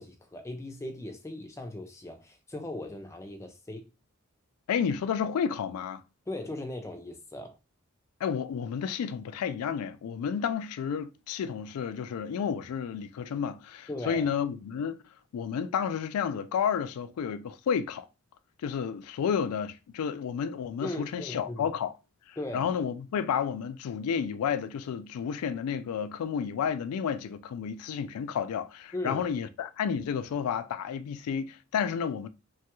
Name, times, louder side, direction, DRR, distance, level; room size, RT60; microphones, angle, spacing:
voice 1, 0.0-3.9 6.3-7.6 13.9-14.3 20.8-21.7 22.4-22.7 28.9-29.2, left 1 dB, 15° left, 0.4 m, -38 dB
voice 2, 4.7-6.0 8.2-15.0 15.3-18.1 18.6-21.9 22.3-32.3, left 7 dB, 85° left, 0.3 m, -31 dB
3.0 x 2.3 x 2.9 m
head